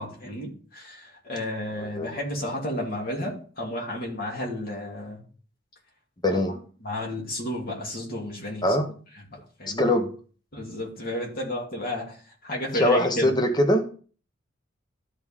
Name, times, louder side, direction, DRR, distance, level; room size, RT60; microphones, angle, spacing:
voice 1, 0.0-5.2 6.3-6.4 6.8-8.6 9.3-9.9 10.5-12.2 12.4-13.3, left 1 dB, 50° left, -2 dB, 2.9 m, -32 dB
voice 2, 1.8-2.2 6.2-6.6 8.6-8.9 9.8-10.1 12.7-13.9, left 1 dB, 20° left, 6 dB, 0.9 m, -23 dB
13.0 x 4.8 x 3.6 m, 0.40 s
head